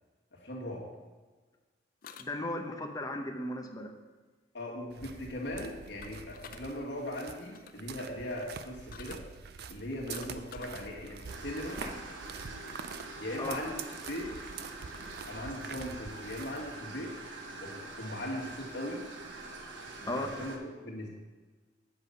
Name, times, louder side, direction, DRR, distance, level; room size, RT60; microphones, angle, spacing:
voice 1, 0.3-0.9 4.5-9.3 9.7-11.8 13.2-14.3 15.3-17.2 17.6-19.1 20.0-21.1, left 1 dB, 70° left, -2 dB, 1.8 m, -39 dB
sound 1, 2.0-2.7 6.0-6.6 7.4-7.8 8.9-9.2 9.8-10.8, left 7 dB, 50° left, 0.5 m, -49 dB
voice 2, 2.2-3.9 13.4-13.6 20.0-20.3, left 1 dB, 20° left, 4 dB, 0.8 m, -36 dB
sound 2, 4.9-16.8, right 6 dB, 60° right, 0.5 m, -46 dB
sound 3, 11.3-20.6, right 2 dB, 85° right, 1.1 m, -44 dB
8.0 x 5.6 x 5.3 m, 1.3 s
head